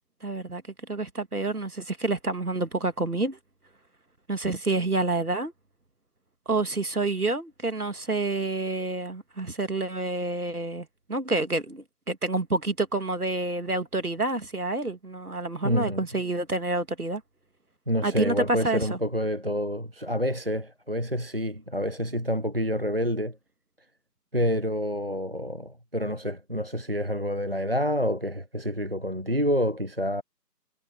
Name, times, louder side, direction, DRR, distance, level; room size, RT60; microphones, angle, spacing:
voice 1, 0.2-0.6 0.9-3.4 4.3-5.5 6.5-17.2 18.0-19.0, right 2 dB, 60° right, 2.6 m, -28 dB
voice 2, 15.6-16.0 17.9-23.4 24.3-30.2, equal, 35° right, 1.0 m, -28 dB
figure-of-eight pair, 170°, 50 cm